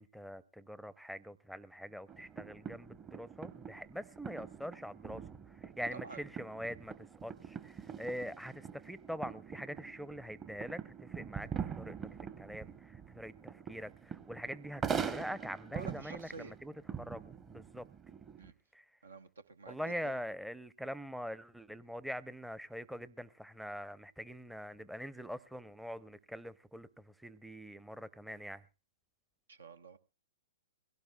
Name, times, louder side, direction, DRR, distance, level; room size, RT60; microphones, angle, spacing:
voice 1, 0.0-5.2 5.6-6.9 7.2-11.5 11.8-12.0 12.4-17.9 18.7-18.8 19.7-28.6, equal, ahead, 0.6 m, -44 dB
sound 1, 2.1-18.5, right 7 dB, 20° right, 0.9 m, -44 dB
voice 2, 5.9-6.2 15.7-16.5 18.4-18.5 19.0-20.2 29.5-30.0, right 4 dB, 75° right, 0.9 m, -49 dB
22.0 x 17.0 x 2.3 m
figure-of-eight pair, 115°, 0 cm